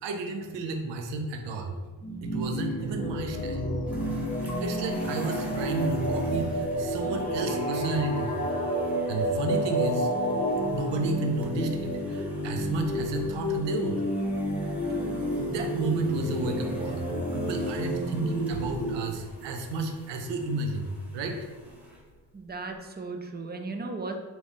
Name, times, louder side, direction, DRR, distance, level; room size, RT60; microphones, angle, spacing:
voice 1, 0.0-1.7 2.2-3.7 4.6-8.3 9.1-10.1 10.7-14.0 15.0-20.9 21.1-21.5, right 2 dB, 65° right, 4 dB, 0.6 m, -32 dB
sound 1, 2.0-18.9, equal, 15° left, 0.6 m, -30 dB
sound 2, 3.9-22.7, equal, 5° right, 1.1 m, -48 dB
voice 2, 22.3-24.2, right 3 dB, 20° right, 4 dB, 0.4 m, -36 dB
3.5 x 2.6 x 3.2 m, 1.3 s
hypercardioid pair, 45°, 47 cm